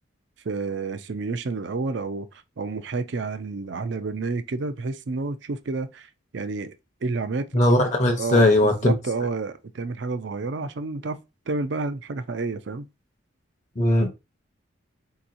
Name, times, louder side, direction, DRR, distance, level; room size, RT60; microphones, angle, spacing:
voice 1, 0.4-6.1 6.3-6.7 7.0-7.5 8.2-11.2 11.5-12.9, right 3 dB, 60° right, 0.5 m, -30 dB
voice 2, 7.5-8.9 13.8-14.1, left 1 dB, 35° left, 0.7 m, -19 dB
4.6 x 2.9 x 2.5 m
head